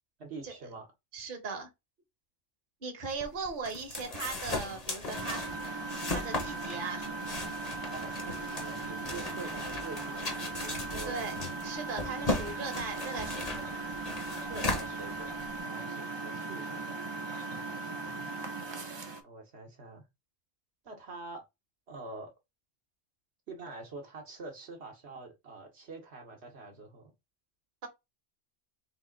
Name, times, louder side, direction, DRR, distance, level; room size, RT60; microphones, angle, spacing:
voice 1, 0.2-0.9 7.8-11.3 14.5-15.3 15.6-17.0 18.0-18.3 19.2-20.0 20.8-21.4 21.9-22.3 23.5-27.1, right 3 dB, 70° right, 1.2 m, -45 dB
voice 2, 1.1-1.7 2.8-5.4 6.1-7.2 11.1-11.3 11.6-13.5 27.8-27.9, right 4 dB, 50° right, 1.1 m, -38 dB
sound 1, 3.1-15.6, left 2 dB, 35° left, 1.0 m, -37 dB
Engine, 5.1-19.2, right 3 dB, 30° right, 0.5 m, -38 dB
3.6 x 2.7 x 3.8 m
omnidirectional pair, 1.2 m